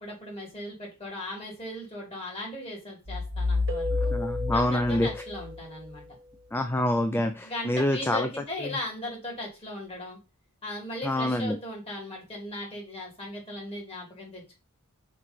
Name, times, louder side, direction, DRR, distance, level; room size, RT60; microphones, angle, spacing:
voice 1, 0.0-4.1 4.5-6.1 7.4-10.2 10.6-14.6, left 1 dB, 25° left, -1 dB, 2.8 m, -38 dB
sound 1, 3.1-5.9, left 3 dB, 90° right, 1.4 m, -30 dB
Keyboard (musical), 3.7-6.2, left 1 dB, 60° right, 0.9 m, -36 dB
voice 2, 4.1-5.1 6.5-8.3 11.1-11.6, left 1 dB, 10° left, 7 dB, 0.4 m, -26 dB
5.9 x 3.2 x 5.4 m, 0.29 s
head